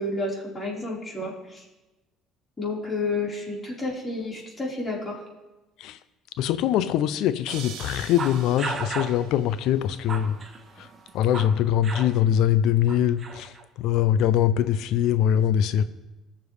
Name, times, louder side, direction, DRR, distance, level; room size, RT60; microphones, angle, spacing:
voice 1, 0.0-1.6 2.6-5.2, left 2 dB, 30° left, -4 dB, 4.3 m, -30 dB
voice 2, 6.4-10.4 11.1-13.5 13.8-15.8, left 10 dB, 70° left, 13 dB, 0.6 m, -22 dB
sound 1, 7.5-9.6, right 8 dB, 70° right, 1.5 m, -43 dB
sound 2, 8.2-9.2 9.8-11.6 11.8-12.1 12.9-13.6, right 4 dB, 35° right, 1.6 m, -34 dB
20.5 x 6.9 x 3.3 m, 1.1 s
supercardioid pair, 75°, 0 cm